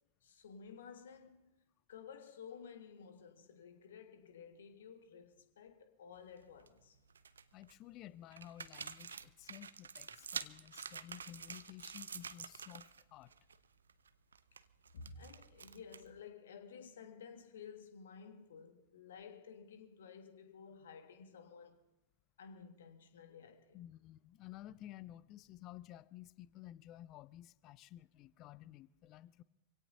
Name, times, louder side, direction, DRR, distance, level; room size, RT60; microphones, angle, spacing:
voice 1, 0.2-1.5 1.9-7.0 14.9-21.8 22.4-23.8, left 6 dB, 65° left, 1.6 m, -54 dB
sound 1, 6.2-6.7 7.1-7.7 8.3-13.0 13.3-13.6 13.9-16.2, right 6 dB, 70° right, 0.5 m, -48 dB
voice 2, 7.5-13.3 23.7-29.4, left 13 dB, 35° left, 0.5 m, -53 dB
26.0 x 17.0 x 2.7 m
figure-of-eight pair, 90°, 0 cm